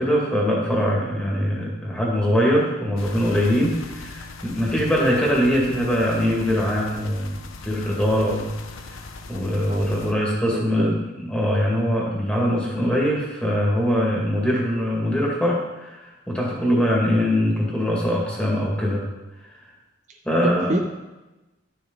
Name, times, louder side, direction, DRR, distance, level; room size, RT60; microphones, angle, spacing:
voice 1, 0.0-7.4 7.6-8.5 9.3-19.0 20.2-20.8, equal, 5° left, -4 dB, 2.0 m, -22 dB
sound 1, 3.0-10.1, left 3 dB, 80° left, 0.8 m, -40 dB
voice 2, 9.7-10.1 10.5-11.0 20.1-20.8, right 2 dB, 35° right, 3 dB, 0.4 m, -30 dB
11.5 x 6.5 x 3.9 m, 1.1 s
head